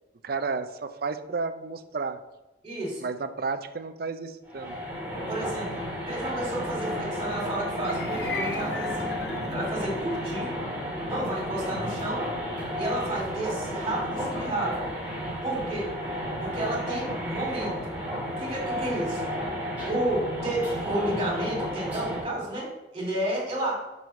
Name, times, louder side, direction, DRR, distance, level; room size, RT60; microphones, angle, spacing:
voice 1, 0.2-2.2 3.0-4.8 11.8-12.0, right 4 dB, 55° right, 9 dB, 0.5 m, -32 dB
voice 2, 2.6-3.0 5.3-9.2 9.5-10.6 11.1-12.3 12.7-14.9 15.4-15.9 16.4-17.9 18.4-19.2 19.8-23.7, right 1 dB, 30° right, -2 dB, 2.5 m, -31 dB
sound 1, 4.5-22.2, equal, 10° right, 2.3 m, -32 dB
sound 2, 7.7-18.1, left 2 dB, 60° left, 0.9 m, -42 dB
5.4 x 4.6 x 6.3 m, 1.0 s
head